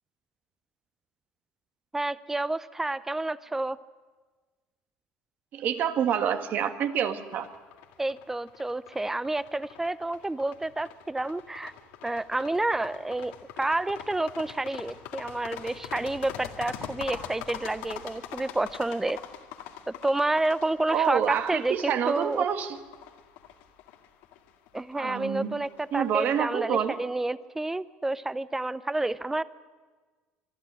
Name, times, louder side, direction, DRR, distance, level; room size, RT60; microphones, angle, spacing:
voice 1, 1.9-3.8 8.0-11.7 12.0-19.2 19.9-22.4 24.7-29.4, right 2 dB, 10° right, 17 dB, 0.6 m, -29 dB
voice 2, 5.5-7.5 20.9-22.8 24.9-25.5 25.9-27.0, right 8 dB, 50° right, 8 dB, 1.6 m, -27 dB
sound 1, 7.3-26.1, left 10 dB, 80° left, 1.9 m, -44 dB
25.0 x 11.5 x 9.9 m, 1.4 s
cardioid pair, 115°, 4 cm